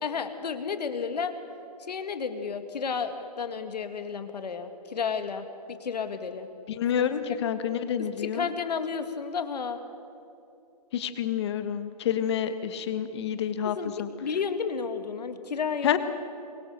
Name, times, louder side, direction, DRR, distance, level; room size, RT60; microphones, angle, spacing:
voice 1, 0.0-1.3 1.8-6.5 6.9-7.0 8.2-9.8 13.6-16.0, left 6 dB, 75° left, 8 dB, 2.1 m, -32 dB
voice 2, 6.7-8.5 10.9-14.1 15.8-16.0, left 9 dB, 40° left, 10 dB, 1.5 m, -28 dB
23.0 x 22.0 x 6.8 m, 2.7 s
hypercardioid pair, 155°, 21 cm